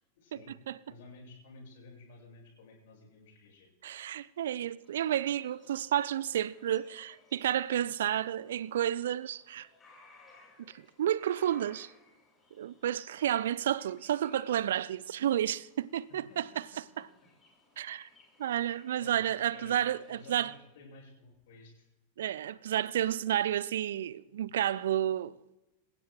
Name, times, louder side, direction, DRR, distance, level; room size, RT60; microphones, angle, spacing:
voice 1, 0.2-0.5 0.9-3.7 16.1-16.4 16.7-16.8 19.0-19.2 19.5-19.8 20.1-21.8, left 3 dB, 55° left, 7.1 m, -53 dB
voice 2, 3.8-9.7 10.6-11.9 12.6-16.6 17.8-18.1 18.4-20.5 22.2-25.3, right 11 dB, 60° right, 0.4 m, -31 dB
sound 1, 4.8-20.6, left 3 dB, 15° left, 6.2 m, -62 dB
27.0 x 16.0 x 2.3 m
figure-of-eight pair, 90°, 0 cm